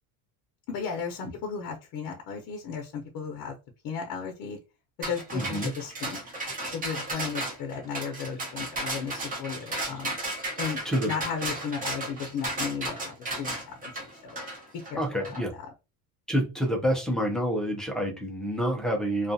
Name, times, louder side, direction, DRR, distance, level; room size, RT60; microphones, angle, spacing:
voice 1, 0.7-3.5 3.8-4.6 5.1-6.2 6.7-10.1 10.6-13.9 14.2-14.4 14.9-15.0, left 6 dB, 55° left, 1 dB, 0.7 m, -35 dB
sound 1, 5.0-15.4, right 1 dB, 20° right, 0.8 m, -34 dB
voice 2, 5.3-5.7 10.8-11.1 15.0-15.5 16.3-19.3, equal, ahead, 0 dB, 0.4 m, -28 dB
2.4 x 2.3 x 2.6 m, 0.28 s
cardioid pair, 150°, 41 cm